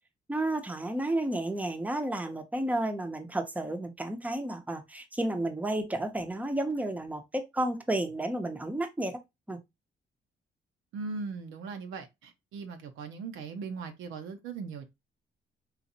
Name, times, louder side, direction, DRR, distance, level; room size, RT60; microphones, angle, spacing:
voice 1, 0.3-9.2 9.5-9.6, right 1 dB, 5° right, 0.6 m, -32 dB
voice 2, 10.9-14.8, right 4 dB, 85° right, 0.6 m, -39 dB
4.0 x 2.5 x 2.7 m
cardioid pair, 90°, 20 cm